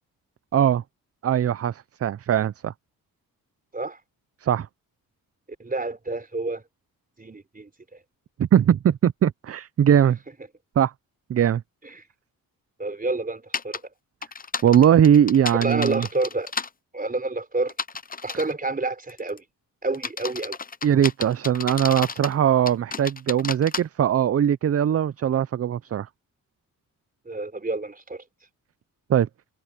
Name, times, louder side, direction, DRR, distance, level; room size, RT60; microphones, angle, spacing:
voice 1, 0.5-0.8 1.2-2.7 4.4-4.7 8.4-10.2 10.8-10.9 11.3-11.6 14.6-16.1 20.8-26.1 29.1-29.3, right 9 dB, 40° right, 0.5 m, -20 dB
voice 2, 5.6-6.6 7.2-7.7 11.8-12.0 12.8-13.8 15.6-16.5 16.9-17.7 18.2-19.4 19.8-20.6 27.3-28.2, right 2 dB, 25° right, 4.1 m, -29 dB
sound 1, 13.5-13.8 14.2-16.7 17.7-18.5 19.1-19.4 19.9-22.3 22.7-23.8, left 5 dB, 25° left, 0.7 m, -32 dB
cardioid pair, 95°, 35 cm